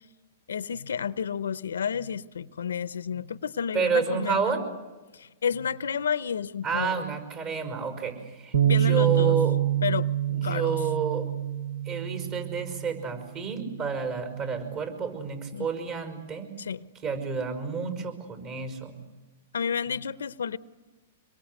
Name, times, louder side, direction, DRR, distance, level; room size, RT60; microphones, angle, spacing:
voice 1, 0.5-4.6 5.1-7.1 8.6-9.4 9.8-10.8 15.5-15.7 16.6-16.8 19.5-20.6, left 7 dB, 90° left, 0.8 m, -31 dB
voice 2, 3.7-4.6 6.6-9.6 10.3-11.3 11.9-16.5 17.0-19.0, right 6 dB, 35° right, 5.5 m, -30 dB
Bass guitar, 8.5-14.8, right 11 dB, 75° right, 1.4 m, -27 dB
26.0 x 22.5 x 8.3 m
hypercardioid pair, 135°, 0 cm